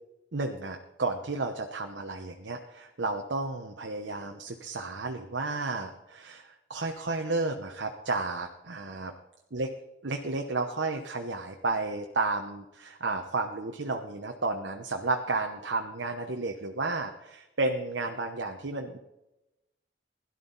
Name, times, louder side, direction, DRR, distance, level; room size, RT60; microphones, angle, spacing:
voice 1, 0.3-9.1 9.5-9.7 10.0-19.0, right 3 dB, 85° right, 3 dB, 1.1 m, -32 dB
16.5 x 12.0 x 4.1 m, 0.93 s
head